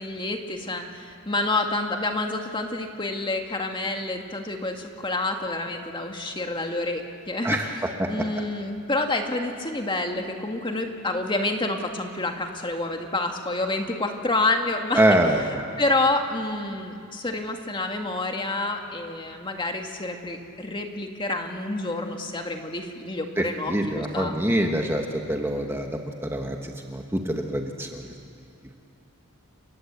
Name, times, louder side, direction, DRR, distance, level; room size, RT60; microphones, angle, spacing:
voice 1, 0.0-7.8 8.1-15.2 15.8-24.3, left 2 dB, 20° left, 3 dB, 1.9 m, -28 dB
voice 2, 7.4-8.1 14.9-15.6 23.4-28.1, right 1 dB, 10° right, 3 dB, 1.3 m, -25 dB
30.0 x 19.0 x 8.2 m, 2.6 s
head